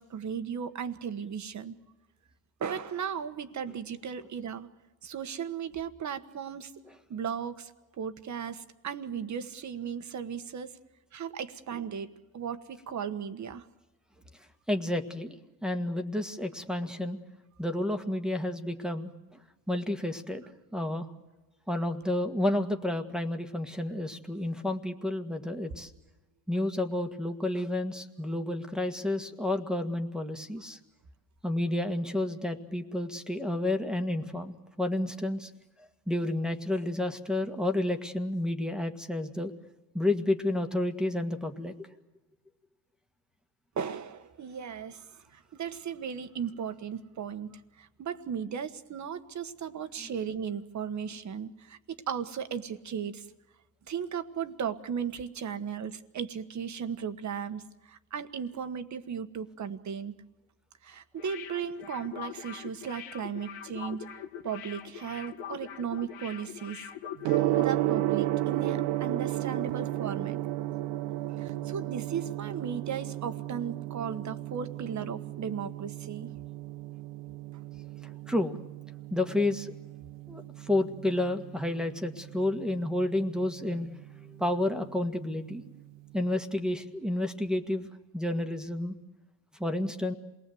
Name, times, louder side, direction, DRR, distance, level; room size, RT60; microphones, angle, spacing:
voice 1, 0.0-1.7 2.6-4.7 5.0-6.7 7.1-7.7 8.0-10.7 11.1-13.7 43.8-45.0 45.3-53.3 53.9-60.2 60.8-64.0 64.4-66.9 67.5-70.4 71.4-76.3, right 7 dB, 40° right, 10 dB, 1.4 m, -36 dB
voice 2, 14.7-15.3 15.6-17.2 17.6-19.1 19.7-20.4 20.7-21.1 21.7-25.9 26.5-30.8 31.4-35.5 36.1-39.5 39.9-41.7 78.3-78.6 79.1-79.7 80.3-83.9 84.4-85.6 86.1-87.9 88.1-89.0 89.6-90.1, left 1 dB, ahead, 4 dB, 1.7 m, -30 dB
sound 1, 61.2-67.8 68.1-68.2, left 9 dB, 80° left, 1.7 m, -43 dB
Gong, 67.2-86.3, right 15 dB, 75° right, 0.9 m, -34 dB
27.5 x 19.5 x 7.8 m, 1.1 s
supercardioid pair, 95°, 43 cm